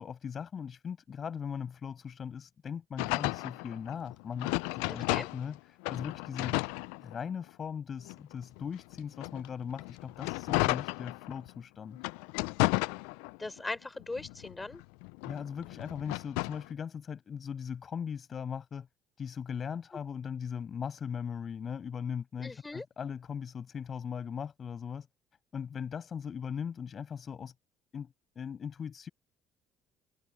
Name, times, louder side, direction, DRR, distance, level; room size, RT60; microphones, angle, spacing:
voice 1, 0.0-6.6 7.0-12.0 15.2-18.9 19.2-25.1 25.5-27.5 27.9-29.1, left 7 dB, 45° left, 7.4 m, -39 dB
sound 1, 3.0-5.6 5.8-7.5 8.0-11.5 12.0-13.6 14.0-16.7, left 29 dB, 75° left, 0.4 m, -33 dB
voice 2, 4.9-5.3 13.4-14.8 22.4-22.8, left 2 dB, 20° left, 6.3 m, -39 dB
hypercardioid pair, 60°, 0 cm